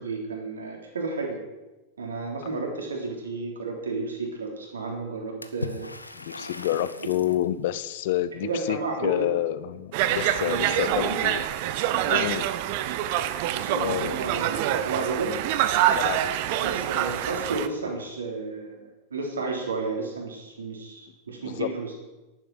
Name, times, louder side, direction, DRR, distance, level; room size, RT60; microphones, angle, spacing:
voice 1, 0.0-1.4 2.0-5.9 8.4-9.3 10.4-11.2 13.5-15.4 16.6-18.8 19.1-21.9, right 3 dB, 70° right, 1 dB, 3.7 m, -32 dB
Water / Splash splatter, 5.4-7.5, left 2 dB, 85° left, 0.9 m, -38 dB
voice 2, 6.1-11.4 12.1-12.5 13.7-14.2 16.0-16.3 21.4-21.7, left 13 dB, 55° left, 15 dB, 0.8 m, -29 dB
Conversation, 9.9-17.7, right 12 dB, 45° right, 0.9 m, -26 dB
11.5 x 10.0 x 7.9 m, 1.1 s
figure-of-eight pair, 90°, 0 cm